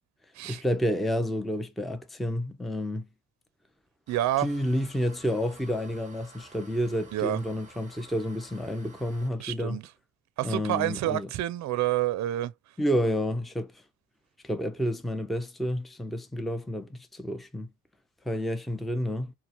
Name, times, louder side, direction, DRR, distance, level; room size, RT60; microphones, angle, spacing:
voice 1, 0.4-3.1 4.4-9.8 10.4-11.3 12.8-13.8 14.4-17.7 18.3-19.3, equal, ahead, 0.6 m, -30 dB
sound 1, 4.1-9.3, right 3 dB, 25° right, 1.1 m, -52 dB
voice 2, 4.1-4.5 7.1-7.4 9.4-9.8 10.4-12.5, right 14 dB, 65° right, 0.5 m, -28 dB
4.3 x 2.2 x 3.9 m
cardioid pair, 90°, 30 cm